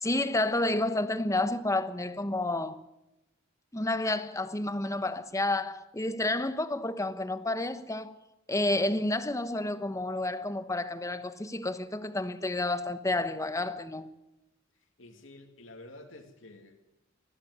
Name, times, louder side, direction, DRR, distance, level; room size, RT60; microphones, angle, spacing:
voice 1, 0.0-2.8 3.7-8.1 8.5-14.1, left 2 dB, 15° left, 1.1 m, -30 dB
voice 2, 14.7-16.8, left 2 dB, 80° left, 2.7 m, -50 dB
20.0 x 14.0 x 9.5 m
head